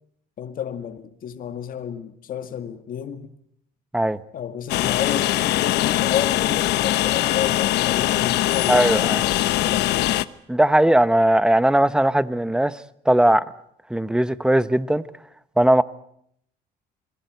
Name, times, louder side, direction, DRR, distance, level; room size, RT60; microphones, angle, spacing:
voice 1, 0.4-3.3 4.3-10.2, left 9 dB, 55° left, 1.9 m, -31 dB
Train, 4.7-10.2, left 15 dB, 80° left, 0.9 m, -22 dB
voice 2, 8.7-9.2 10.5-13.4 13.9-15.0 15.6-15.8, right 1 dB, 5° right, 0.9 m, -18 dB
27.0 x 20.0 x 8.1 m
cardioid pair, 110°, 17 cm